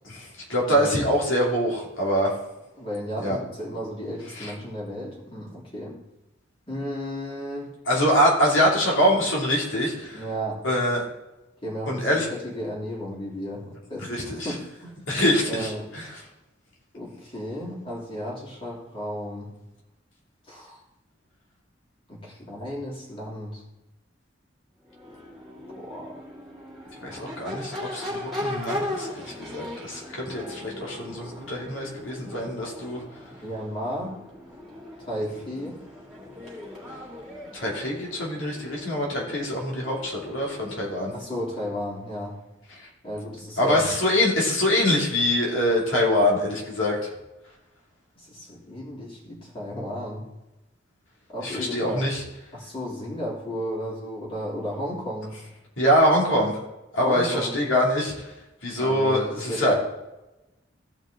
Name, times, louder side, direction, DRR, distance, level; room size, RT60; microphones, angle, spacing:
voice 1, 0.0-2.3 3.2-3.4 4.3-4.5 7.8-10.2 10.6-11.1 11.9-12.3 14.1-14.5 15.1-16.2 27.0-33.0 37.5-41.1 42.8-42.9 43.6-47.0 51.4-52.2 55.8-56.6 56.9-58.3 58.6-59.7, equal, 75° left, -3 dB, 2.8 m, -24 dB
voice 2, 0.7-1.0 2.8-6.0 6.7-7.7 10.1-10.7 11.6-15.0 15.5-15.9 16.9-19.5 20.5-20.8 22.1-23.6 25.8-26.1 33.4-34.2 35.0-35.8 41.1-42.4 43.0-43.9 48.2-50.3 51.3-52.1 52.5-55.3 57.0-57.5 58.7-59.7, equal, 30° left, -5 dB, 3.2 m, -33 dB
Crowd / Race car auto racing / Accelerating revving vroom, 24.8-41.9, left 1 dB, ahead, 2.9 m, -38 dB
15.0 x 5.4 x 3.8 m, 0.98 s
head